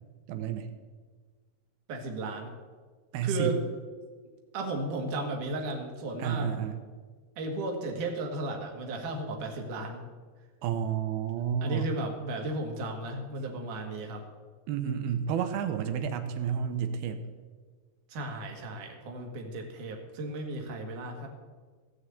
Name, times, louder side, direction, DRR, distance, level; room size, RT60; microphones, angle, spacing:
voice 1, 0.3-0.7 3.1-3.6 6.2-6.8 10.6-11.9 14.7-17.3, right 8 dB, 80° right, 8 dB, 2.7 m, -30 dB
voice 2, 1.9-2.5 3.2-3.6 4.5-6.5 7.4-10.0 11.6-14.2 18.1-21.3, right 2 dB, 55° right, 2 dB, 3.1 m, -34 dB
17.0 x 6.4 x 7.9 m, 1.5 s
omnidirectional pair, 4.7 m